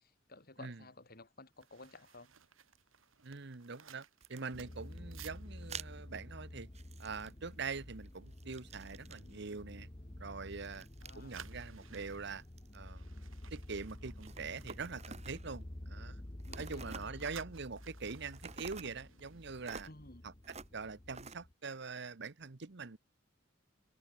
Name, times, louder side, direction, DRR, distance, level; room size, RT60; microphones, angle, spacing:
voice 1, 0.0-2.3 11.0-11.5 16.5-17.4 19.9-20.2, left 2 dB, 50° left, 3.6 m, -55 dB
sound 1, 1.5-7.6 8.0-8.2 8.6-8.9 9.4-10.6 10.9-15.7 15.9-20.4 20.7-21.0, right 8 dB, 80° right, 3.0 m, -59 dB
voice 2, 3.2-6.7 7.0-9.9 10.2-10.9 11.1-12.4 12.7-13.1 13.5-16.2 16.5-19.9 20.2-20.3 20.7-23.0, right 4 dB, 60° right, 1.0 m, -44 dB
sound 2, 4.2-4.4 5.7-5.9 6.7-7.7 8.0-9.4 10.5-11.2 11.7-12.8 14.0-15.5 16.4-17.5 18.3-19.0 19.7-19.9 20.4-20.7 21.1-21.4, right 5 dB, 35° right, 3.1 m, -50 dB
sound 3, 4.5-21.5, left 1 dB, 25° left, 1.0 m, -50 dB
head